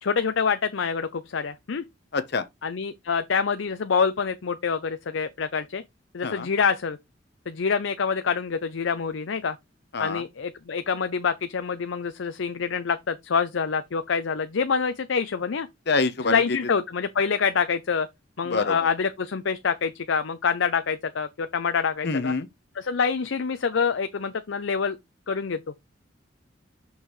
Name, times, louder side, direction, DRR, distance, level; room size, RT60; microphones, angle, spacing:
voice 1, 0.0-1.8 2.6-5.8 6.1-7.0 7.5-9.6 10.0-15.7 16.3-18.1 18.4-22.3 22.8-25.0 25.3-25.6, left 5 dB, 75° left, 0.6 m, -26 dB
voice 2, 2.1-2.4 6.2-6.5 9.9-10.2 15.9-16.6 18.4-18.9 22.0-22.5, left 4 dB, 60° left, 0.9 m, -26 dB
6.3 x 5.6 x 3.1 m
head